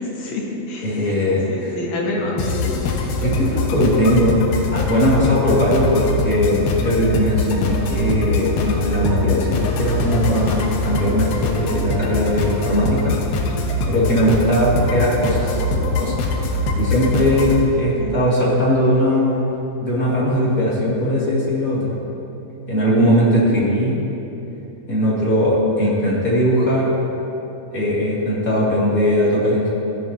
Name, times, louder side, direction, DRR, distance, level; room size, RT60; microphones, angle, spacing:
voice 1, 0.2-1.2 1.5-2.7 18.0-18.2, left 2 dB, 55° left, -3 dB, 2.4 m, -27 dB
voice 2, 0.8-1.7 3.2-13.2 13.9-15.6 16.0-16.3 16.7-19.5 19.8-22.0 22.7-24.0 24.9-27.0 27.7-29.7, equal, 25° left, -8 dB, 2.1 m, -19 dB
sound 1, 2.4-17.6, left 2 dB, 90° left, 3.1 m, -23 dB
16.5 x 12.5 x 2.9 m, 2.9 s
omnidirectional pair, 4.6 m